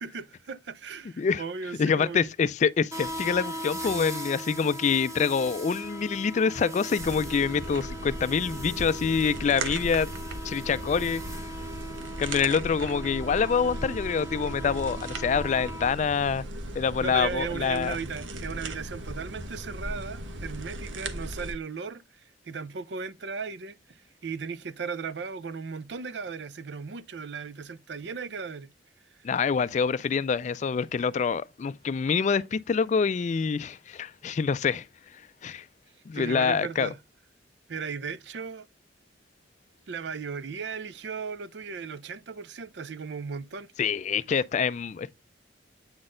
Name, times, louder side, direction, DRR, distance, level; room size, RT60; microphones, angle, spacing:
voice 1, 0.0-2.3 17.0-22.0 22.5-28.7 29.1-29.2 36.1-37.0 37.7-38.7 39.9-43.7, right 5 dB, 65° right, 0.5 m, -36 dB
voice 2, 1.8-10.1 10.4-11.2 12.2-16.5 16.7-18.0 29.2-34.9 35.4-35.6 36.1-36.9 43.8-45.1, left 6 dB, 40° left, 0.3 m, -26 dB
sound 1, 2.9-15.9, right 1 dB, 15° right, 1.3 m, -39 dB
sound 2, 7.0-21.5, right 1 dB, 85° right, 1.1 m, -37 dB
8.7 x 4.1 x 3.7 m
head